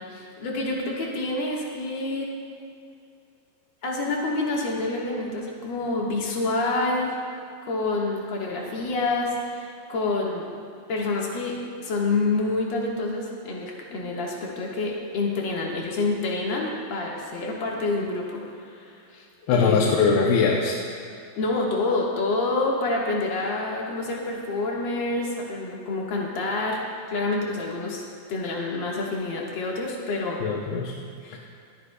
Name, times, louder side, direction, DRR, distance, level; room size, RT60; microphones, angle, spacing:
voice 1, 0.0-2.3 3.8-7.2 7.6-10.5 10.9-19.9 21.4-26.8 27.1-28.0 28.3-30.4 31.2-31.4, left 2 dB, 60° left, -3 dB, 1.2 m, -27 dB
voice 2, 19.5-20.8 30.4-30.9 31.3-31.4, left 5 dB, 85° left, -1 dB, 2.8 m, -21 dB
25.5 x 10.0 x 2.3 m, 2.5 s
omnidirectional pair, 4.5 m